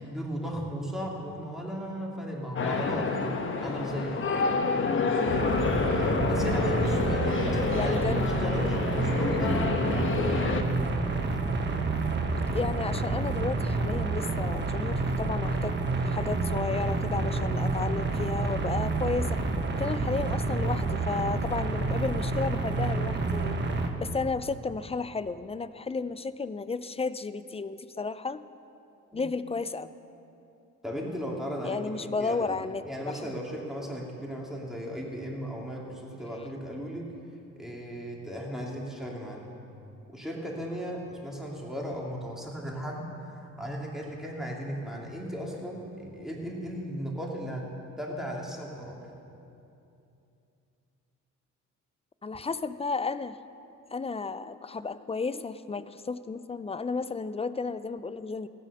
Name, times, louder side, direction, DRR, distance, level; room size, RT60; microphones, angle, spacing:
voice 1, 0.0-3.3 3.6-4.5 6.3-10.1 29.1-29.2 30.8-32.6 32.9-37.1 37.6-39.5 40.1-47.7 48.0-49.1, equal, ahead, -2 dB, 2.8 m, -36 dB
sound 1, 2.6-10.6, left 4 dB, 40° left, 1.2 m, -28 dB
sound 2, 5.3-23.9, right 3 dB, 35° right, 1.3 m, -29 dB
voice 2, 7.7-8.3 12.5-15.8 16.0-19.4 19.7-23.6 24.0-28.4 29.1-29.9 31.6-33.3 52.2-53.4 53.9-58.5, left 4 dB, 20° left, 14 dB, 0.4 m, -33 dB
15.0 x 9.2 x 6.7 m, 2.8 s
cardioid pair, 90°, 30 cm